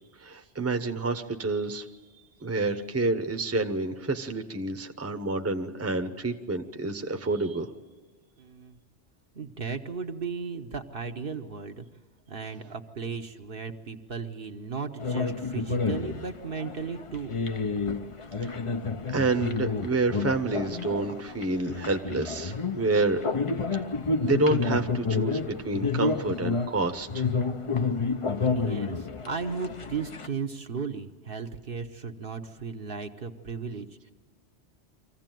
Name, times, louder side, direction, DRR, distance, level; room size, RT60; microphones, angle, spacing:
voice 1, 0.2-1.9 2.4-7.7 18.4-18.6 19.1-23.2 23.7-23.8 24.2-27.3, right 3 dB, 15° right, 7 dB, 0.9 m, -28 dB
voice 2, 8.4-8.8 9.3-11.9 12.3-17.4 28.5-34.1, right 5 dB, 55° right, 6 dB, 1.2 m, -35 dB
sound 1, 15.0-30.3, left 4 dB, 35° left, 0.7 m, -30 dB
24.5 x 15.5 x 9.2 m, 1.4 s
omnidirectional pair, 1.2 m